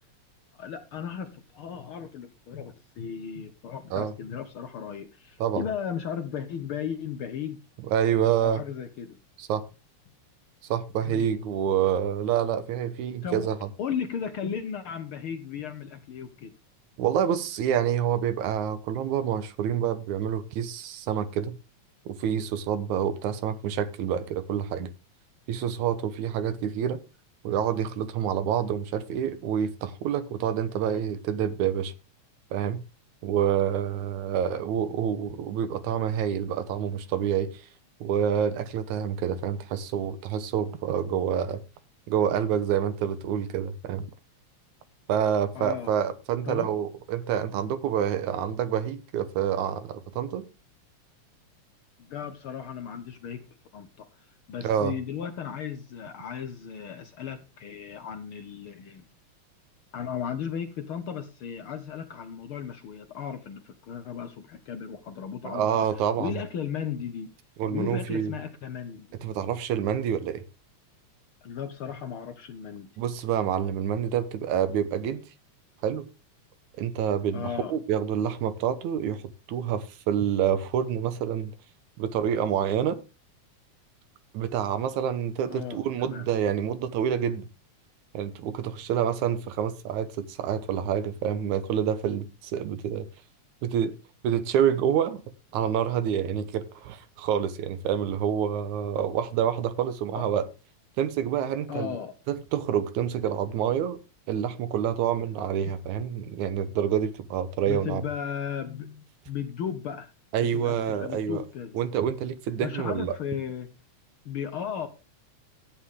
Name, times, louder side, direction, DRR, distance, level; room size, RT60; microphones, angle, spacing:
voice 1, 0.5-7.6 8.4-9.2 11.0-11.3 13.2-16.5 45.5-46.0 46.4-46.7 52.0-53.4 53.7-54.1 54.5-59.0 59.9-65.9 66.2-67.3 67.7-69.1 71.4-72.9 77.3-77.7 85.5-86.2 100.1-100.3 101.7-102.1 107.7-110.1 110.4-111.8 112.6-113.7 114.2-114.9, left 7 dB, 65° left, 1.4 m, -35 dB
voice 2, 7.9-8.6 9.4-9.6 10.7-13.7 17.0-21.6 22.1-24.9 25.5-27.0 27.4-31.9 32.5-32.8 33.2-37.6 38.0-41.6 42.1-44.1 45.1-50.5 54.6-54.9 65.4-66.4 67.6-68.3 69.2-70.4 73.0-75.2 75.8-76.1 76.8-79.2 79.5-81.5 82.0-83.0 84.3-87.5 88.1-93.1 93.6-94.0 94.2-95.2 95.5-100.5 101.0-101.9 102.3-104.0 104.3-108.0 110.3-111.4 111.7-113.2, right 9 dB, 90° right, 2.4 m, -27 dB
13.5 x 8.8 x 3.7 m
omnidirectional pair, 3.3 m